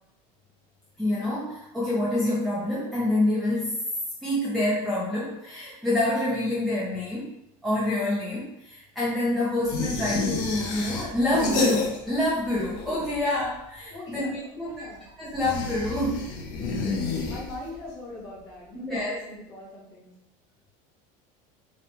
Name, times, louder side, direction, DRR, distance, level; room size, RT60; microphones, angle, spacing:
voice 1, 1.0-3.8 4.2-7.3 7.6-14.9 15.2-16.2 18.7-19.2, left 1 dB, ahead, -8 dB, 0.4 m, -27 dB
sound 1, 9.7-12.3 12.5-13.3 15.3-17.8, left 4 dB, 55° left, 0.8 m, -30 dB
voice 2, 13.9-15.1 16.6-20.1, left 2 dB, 20° left, -4 dB, 1.0 m, -42 dB
4.2 x 2.1 x 4.1 m, 0.87 s
cardioid pair, 175°, 18 cm